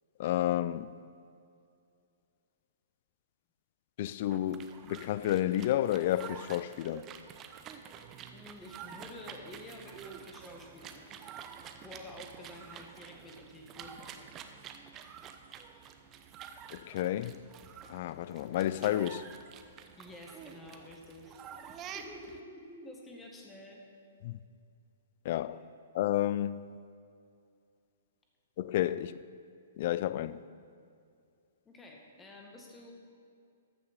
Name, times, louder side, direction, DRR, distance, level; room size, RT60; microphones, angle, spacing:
voice 1, 0.2-1.0 4.0-7.0 16.7-17.4 17.9-19.3 24.2-24.4 25.2-25.6 25.9-26.7 28.6-29.2 29.8-30.4, left 13 dB, 45° left, 0.3 m, -31 dB
sound 1, 4.2-22.4, right 8 dB, 25° right, 0.7 m, -49 dB
voice 2, 8.3-11.2 11.8-14.2 20.0-21.4 21.8-23.8 25.5-25.6 31.6-32.9, left 2 dB, 15° left, 1.7 m, -50 dB
13.5 x 6.6 x 5.3 m
figure-of-eight pair, 115°, 0 cm